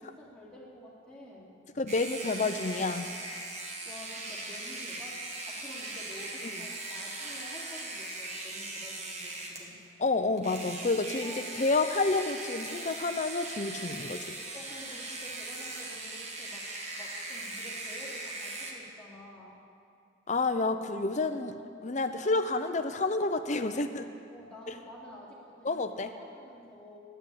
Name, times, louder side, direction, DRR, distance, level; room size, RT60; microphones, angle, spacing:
voice 1, 0.0-1.6 3.8-9.8 11.2-11.5 14.5-19.6 24.3-27.0, left 1 dB, 5° left, -6 dB, 2.7 m, -49 dB
voice 2, 1.8-3.1 10.0-14.2 20.3-24.1 25.6-26.1, left 3 dB, 40° left, 8 dB, 0.6 m, -29 dB
sound 1, 1.9-9.7 10.4-18.7, right 2 dB, 35° right, 1.4 m, -39 dB
10.0 x 9.9 x 8.5 m, 2.4 s
head